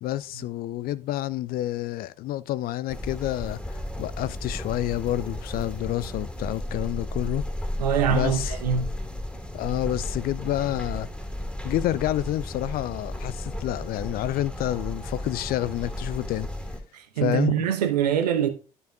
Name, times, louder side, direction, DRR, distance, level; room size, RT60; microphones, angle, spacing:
voice 1, 0.0-7.5 8.1-8.6 9.5-11.1 11.6-16.5 17.2-17.7, left 14 dB, 45° left, 0.4 m, -29 dB
sound 1, 2.9-16.8, left 1 dB, 5° left, 2.1 m, -34 dB
voice 2, 7.8-8.9 16.9-18.5, right 9 dB, 75° right, 0.9 m, -24 dB
12.5 x 5.4 x 2.4 m
figure-of-eight pair, 50°, 21 cm